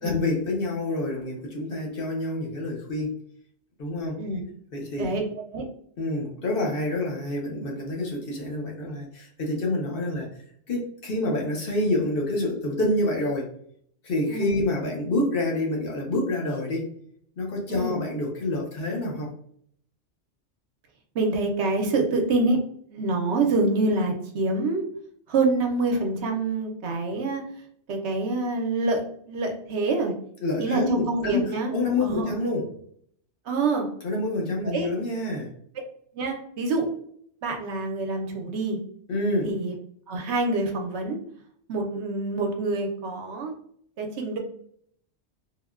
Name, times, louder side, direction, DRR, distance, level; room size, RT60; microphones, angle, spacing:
voice 1, 0.0-3.1 3.8-4.2 4.7-5.1 6.0-10.3 10.7-13.5 14.0-16.9 17.4-19.3 30.4-32.7 34.0-35.5 39.1-39.5, left 2 dB, 55° left, -2 dB, 0.8 m, -27 dB
voice 2, 21.1-22.6 22.9-24.8 25.3-27.4 27.9-30.1 30.6-31.7 32.0-32.3 33.5-33.9 34.7-34.9 36.1-36.9 37.4-38.8 39.4-39.7 40.1-41.2 41.7-43.5 44.0-44.4, right 3 dB, 70° right, 3 dB, 0.8 m, -26 dB
3.6 x 2.1 x 2.3 m, 0.64 s
omnidirectional pair, 1.2 m